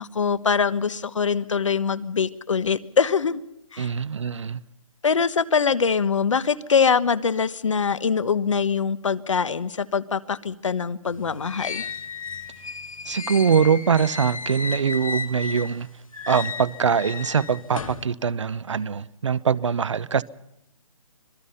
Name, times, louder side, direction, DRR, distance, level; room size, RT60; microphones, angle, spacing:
voice 1, 0.0-3.4 3.7-3.9 5.0-11.8, left 6 dB, 65° left, 1.3 m, -23 dB
voice 2, 3.8-4.6 13.1-15.9 16.3-20.2, right 6 dB, 60° right, 0.8 m, -23 dB
sound 1, 11.1-15.8 16.1-18.1, left 5 dB, 80° left, 2.4 m, -34 dB
26.0 x 19.0 x 5.6 m
hypercardioid pair, 170°, 17 cm